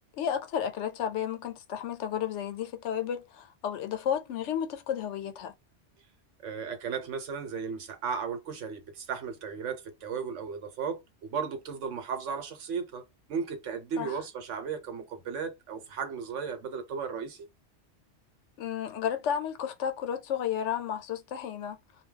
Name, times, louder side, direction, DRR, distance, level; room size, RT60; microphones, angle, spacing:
voice 1, 0.2-5.5 14.0-14.1 18.6-21.8, left 9 dB, 75° left, 0.9 m, -32 dB
voice 2, 6.4-13.0 13.3-17.5, right 6 dB, 85° right, 1.1 m, -35 dB
2.2 x 2.2 x 3.6 m
omnidirectional pair, 1.2 m